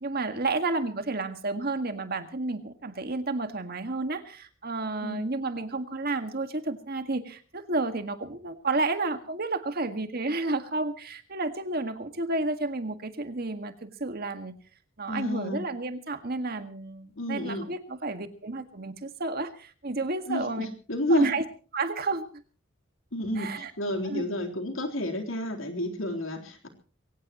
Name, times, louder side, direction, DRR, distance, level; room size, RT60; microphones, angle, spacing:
voice 1, 0.0-14.5 15.0-20.7 21.1-21.4 21.7-22.4 23.4-23.7 24.0-24.2, right 3 dB, 50° right, 8 dB, 1.8 m, -31 dB
voice 2, 15.1-15.7 17.2-17.7 20.3-21.3 23.1-26.7, left 1 dB, 75° left, 3 dB, 3.8 m, -30 dB
22.5 x 18.0 x 3.0 m, 0.40 s
head